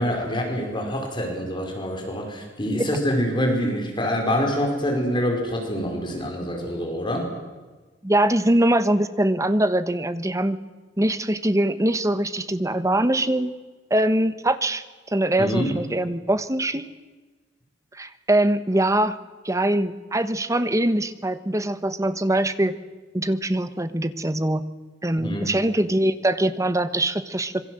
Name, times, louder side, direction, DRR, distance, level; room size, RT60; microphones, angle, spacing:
voice 1, 0.0-7.3 15.4-15.7 25.2-25.5, equal, 25° left, 2 dB, 5.0 m, -25 dB
voice 2, 8.0-10.6 11.0-13.5 13.9-16.8 17.9-19.2 19.4-22.7 23.1-24.6 25.0-27.6, right 1 dB, 15° right, 11 dB, 1.2 m, -22 dB
26.5 x 22.5 x 7.9 m, 1.3 s
head